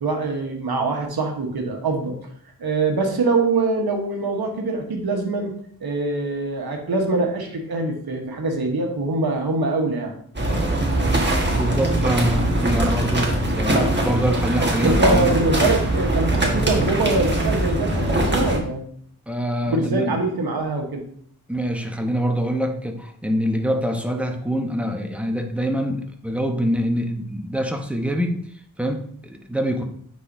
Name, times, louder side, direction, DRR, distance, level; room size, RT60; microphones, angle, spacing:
voice 1, 0.0-2.2 2.6-5.5 5.8-10.2 14.8-18.8 19.7-21.1, right 3 dB, 85° right, 2 dB, 1.2 m, -23 dB
sound 1, 10.3-18.6, right 1 dB, 30° right, 1.5 m, -21 dB
voice 2, 11.5-15.4 19.3-20.2 21.5-28.5 28.8-29.8, equal, 5° right, 4 dB, 0.9 m, -25 dB
9.0 x 4.1 x 2.7 m, 0.63 s
cardioid pair, 60°, 37 cm